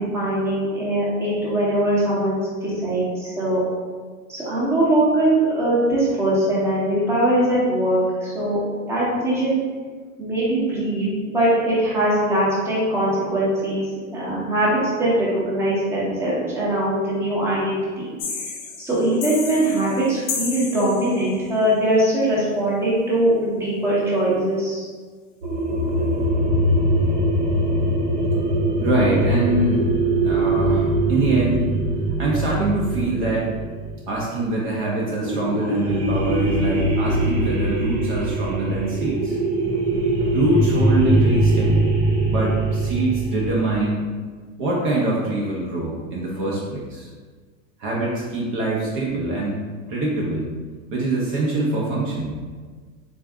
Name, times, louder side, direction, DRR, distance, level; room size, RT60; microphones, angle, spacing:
voice 1, 0.0-3.6 4.3-8.6 8.9-9.6 10.2-13.8 14.1-24.9, right 1 dB, 5° right, -8 dB, 0.8 m, -21 dB
sound 1, 18.2-21.4, left 5 dB, 35° left, 0.5 m, -32 dB
sound 2, 25.4-34.5 35.2-43.9, right 1 dB, 55° right, 1.0 m, -22 dB
voice 2, 28.8-29.8 30.2-31.7 32.2-33.5 34.1-39.4 40.3-41.9 42.2-44.1 44.6-47.1 47.8-50.5 50.9-52.4, right 2 dB, 40° right, -4 dB, 0.6 m, -24 dB
3.6 x 2.6 x 3.4 m, 1.5 s
supercardioid pair, 145°, 41 cm